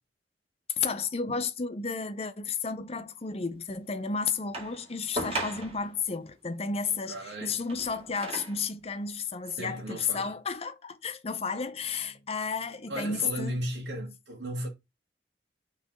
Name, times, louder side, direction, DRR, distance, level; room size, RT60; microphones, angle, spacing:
voice 1, 0.8-13.6, left 5 dB, 35° left, 0.7 m, -32 dB
sound 1, 4.5-6.0 7.5-8.7 9.5-9.6, right 1 dB, 35° right, 2.1 m, -37 dB
voice 2, 7.1-7.6 9.6-10.3 12.9-14.7, right 1 dB, 85° right, 1.7 m, -35 dB
6.0 x 3.2 x 5.1 m
head